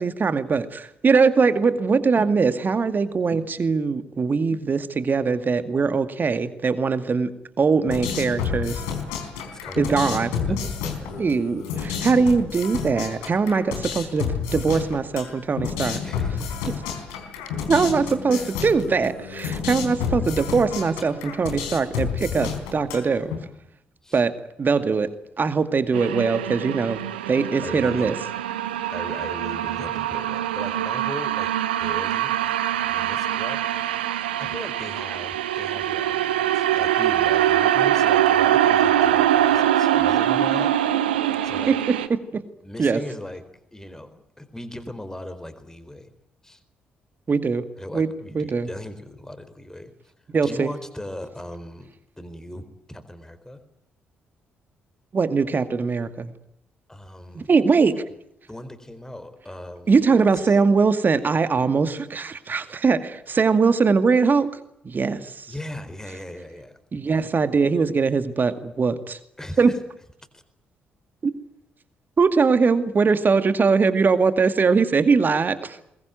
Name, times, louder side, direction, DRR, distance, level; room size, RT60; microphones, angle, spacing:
voice 1, 0.0-7.3 7.6-8.8 9.8-10.3 11.2-16.0 17.7-23.3 24.1-24.3 24.6-25.1 25.4-27.0 27.3-28.2 41.7-42.4 42.8-43.0 47.3-47.7 47.9-48.1 48.3-48.7 50.3-50.7 55.1-56.3 57.4-58.0 59.9-64.5 64.8-65.5 66.9-69.2 69.6-69.7 72.2-75.8, right 5 dB, 35° right, 11 dB, 2.2 m, -21 dB
sound 1, 7.9-23.4, left 7 dB, 70° left, 3.9 m, -30 dB
voice 2, 9.4-11.1 15.8-16.5 18.3-18.5 19.6-19.7 19.9-20.3 24.0-24.2 25.8-25.9 27.6-28.1 28.9-31.5 31.8-32.5 32.9-40.7 41.4-41.7 42.6-43.4 43.7-46.1 46.4-46.6 47.8-49.9 50.4-51.9 52.2-53.6 56.9-57.5 58.5-60.0 60.3-60.6 65.5-66.8 69.4-69.8 70.3-70.4, left 1 dB, 10° left, 10 dB, 4.3 m, -38 dB
sound 2, 25.9-42.1, right 11 dB, 75° right, 1.0 m, -23 dB
23.0 x 21.0 x 9.2 m, 0.78 s
figure-of-eight pair, 40°, 5 cm